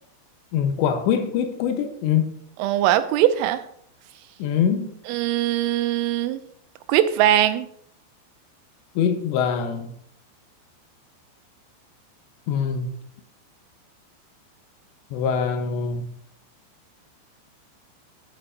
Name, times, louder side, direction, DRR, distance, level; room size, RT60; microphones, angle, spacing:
voice 1, 0.5-2.3 4.4-4.9 9.0-9.9 12.5-12.9 15.1-16.1, left 7 dB, 80° left, 7 dB, 2.9 m, -23 dB
voice 2, 2.6-3.6 5.1-6.4 6.9-7.7, right 12 dB, 90° right, 11 dB, 3.1 m, -21 dB
11.0 x 8.0 x 2.6 m, 0.67 s
omnidirectional pair, 5.5 m